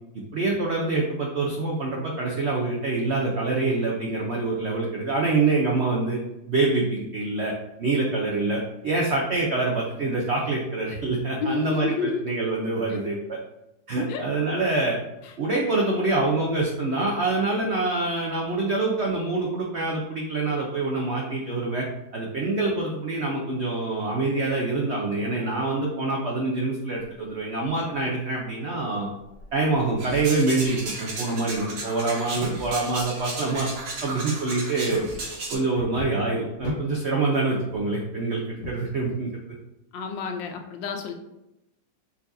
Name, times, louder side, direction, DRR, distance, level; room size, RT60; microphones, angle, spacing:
voice 1, 0.3-6.2 6.5-7.5 7.8-13.4 13.9-15.0 15.4-21.9 22.1-29.1 29.5-33.7 34.0-35.0 35.5-39.3, right 3 dB, 85° right, -1 dB, 0.5 m, -25 dB
voice 2, 11.4-12.2 12.9-13.0 14.1-14.3 15.2-15.3 39.9-41.1, left 5 dB, 80° left, 4 dB, 1.4 m, -30 dB
sound 1, 26.9-39.1, left 1 dB, 45° left, 1.2 m, -43 dB
sound 2, 30.0-35.5, right 2 dB, 60° right, 1.5 m, -34 dB
4.8 x 4.1 x 2.6 m, 0.89 s
omnidirectional pair, 2.0 m